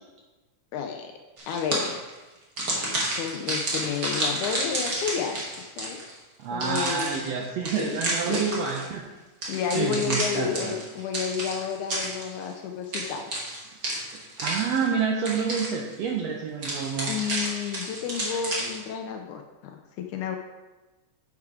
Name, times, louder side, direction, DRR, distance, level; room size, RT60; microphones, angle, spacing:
voice 1, 0.7-1.1 1.5-2.0 2.9-5.4 5.8-6.0 6.5-7.2 7.8-8.4 9.5-13.3 17.1-20.4, left 7 dB, 80° left, 4 dB, 1.9 m, -31 dB
sound 1, 1.4-2.1 2.6-6.1 6.6-8.9 9.4-12.5 12.9-15.0 15.2-15.9 16.6-18.9, right 1 dB, 40° right, 1.4 m, -31 dB
voice 2, 6.4-9.0 9.7-10.7 14.1-17.1, right 6 dB, 80° right, 0 dB, 1.5 m, -28 dB
8.9 x 4.7 x 4.8 m, 1.2 s
omnidirectional pair, 3.8 m